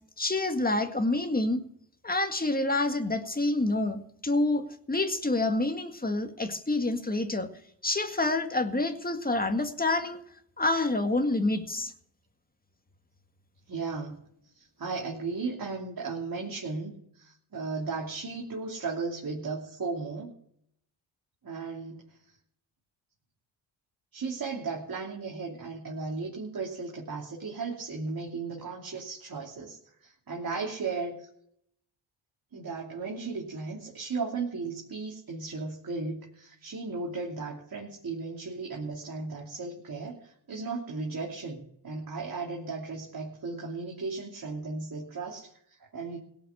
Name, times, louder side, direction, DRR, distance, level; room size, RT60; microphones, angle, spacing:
voice 1, 0.2-1.6 2.0-7.5 7.8-10.2 10.6-11.9, left 2 dB, 20° left, 6 dB, 1.8 m, -27 dB
voice 2, 13.7-14.2 14.5-20.3 21.4-22.0 24.1-31.3 32.5-46.2, right 4 dB, 45° right, -2 dB, 3.0 m, -36 dB
17.5 x 6.0 x 8.6 m, 0.69 s
cardioid pair, 65°, 48 cm